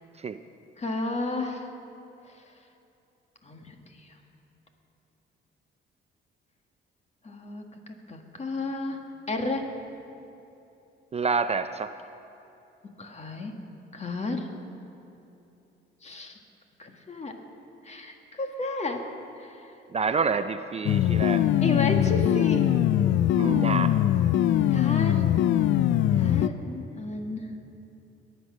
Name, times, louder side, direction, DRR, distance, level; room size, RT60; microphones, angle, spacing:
voice 1, 0.8-1.7 2.3-2.4 3.4-4.2 7.2-9.8 12.8-13.6 13.9-14.5 16.0-16.4 16.8-17.4 17.8-19.1 19.4-19.7 21.6-22.7 24.7-25.3 26.1-27.5, left 3 dB, 35° left, 4 dB, 1.7 m, -32 dB
voice 2, 11.1-11.9 19.9-21.5 23.4-24.0, right 5 dB, 30° right, 10 dB, 0.5 m, -28 dB
sound 1, 20.8-26.5, left 11 dB, 75° left, 0.4 m, -22 dB
21.5 x 8.2 x 6.3 m, 2.9 s
cardioid pair, 90°, 20 cm